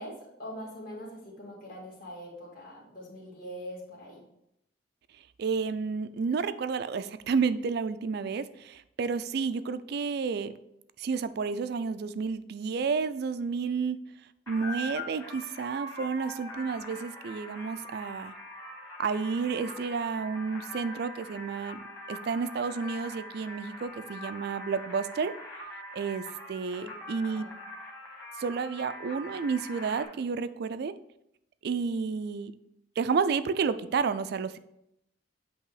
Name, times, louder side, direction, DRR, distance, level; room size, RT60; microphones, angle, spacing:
voice 1, 0.0-4.2 26.8-26.9 27.3-27.5, equal, 50° left, -4 dB, 2.0 m, -43 dB
voice 2, 5.4-10.5 11.0-14.0 14.5-18.3 19.0-21.8 22.1-25.3 25.9-27.4 28.4-31.0 31.6-32.5 33.0-34.6, right 5 dB, 55° right, 13 dB, 0.3 m, -31 dB
sound 1, 14.5-30.0, left 1 dB, 15° left, 1.2 m, -43 dB
8.2 x 3.0 x 4.8 m, 0.80 s
head